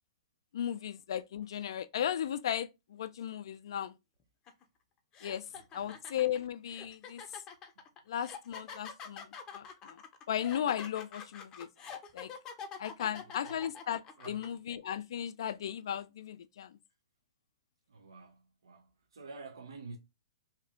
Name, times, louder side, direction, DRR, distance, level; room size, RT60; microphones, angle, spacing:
voice 1, 0.5-4.0 5.2-5.5 5.7-7.2 8.1-10.0 10.3-11.7 12.1-12.3 12.8-16.8, left 10 dB, 70° left, 0.4 m, -36 dB
sound 1, 4.5-4.6 5.1-14.5, left 6 dB, 25° left, 0.6 m, -46 dB
voice 2, 5.5-6.0 6.7-6.8 13.1-13.7 14.2-14.5 17.9-20.0, right 4 dB, 80° right, 0.6 m, -50 dB
2.9 x 2.3 x 3.4 m
hypercardioid pair, 130°, 3 cm